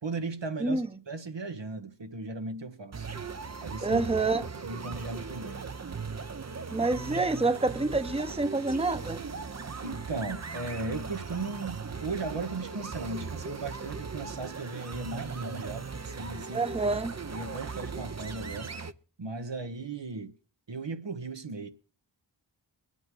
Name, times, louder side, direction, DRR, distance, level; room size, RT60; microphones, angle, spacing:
voice 1, 0.0-3.1 3.6-4.1 4.6-5.7 6.8-6.9 9.8-16.8 17.3-18.7 19.2-20.3 20.7-21.7, right 3 dB, 80° right, 1.4 m, -37 dB
sound 1, 2.9-18.9, right 5 dB, 40° right, 0.8 m, -38 dB
voice 2, 3.8-4.4 6.7-9.2 16.5-17.2, right 3 dB, 15° right, 0.9 m, -27 dB
23.5 x 9.1 x 3.8 m
wide cardioid pair, 55°, 43 cm